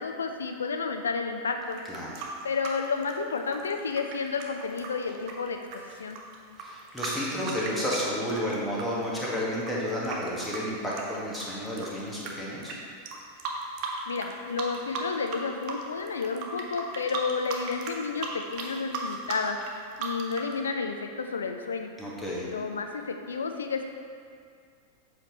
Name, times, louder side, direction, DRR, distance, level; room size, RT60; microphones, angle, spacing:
voice 1, 0.0-1.8 2.4-6.2 14.1-19.6 20.0-21.9 22.5-23.8, left 5 dB, 70° left, 6 dB, 0.5 m, -31 dB
sound 1, 1.7-8.8 9.2-12.3 12.6-12.8 13.1-14.3 14.6-15.4 15.6-20.5, right 5 dB, 40° right, 0.8 m, -37 dB
voice 2, 6.6-12.8 22.0-22.5, equal, 5° left, -7 dB, 1.6 m, -31 dB
7.4 x 5.1 x 3.1 m, 2.3 s
figure-of-eight pair, 90°, 0 cm